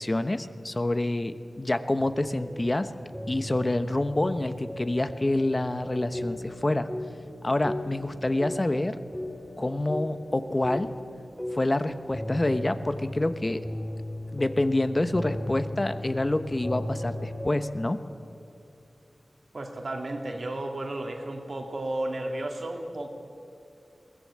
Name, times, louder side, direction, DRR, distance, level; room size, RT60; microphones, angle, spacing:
voice 1, 0.0-2.9 3.3-6.9 7.4-9.0 9.6-10.9 11.5-13.6 14.3-18.0, left 1 dB, 30° left, 11 dB, 0.9 m, -27 dB
sound 1, 2.0-17.5, left 1 dB, 10° left, 2.2 m, -37 dB
voice 2, 19.5-23.1, right 1 dB, 60° right, 3 dB, 2.2 m, -33 dB
22.0 x 18.0 x 8.7 m, 2.7 s
wide cardioid pair, 90°, 0 cm